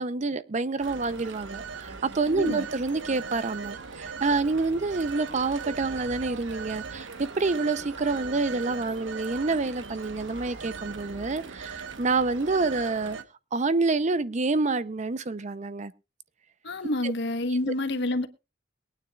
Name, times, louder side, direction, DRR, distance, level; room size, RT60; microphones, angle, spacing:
voice 1, 0.0-13.2 13.5-15.9 17.0-17.1, right 3 dB, 40° right, 0.6 m, -27 dB
Telephone, 0.8-13.2, right 5 dB, 90° right, 1.1 m, -39 dB
voice 2, 2.3-2.7 16.6-18.3, left 2 dB, 65° left, 1.1 m, -28 dB
22.5 x 9.4 x 2.4 m
head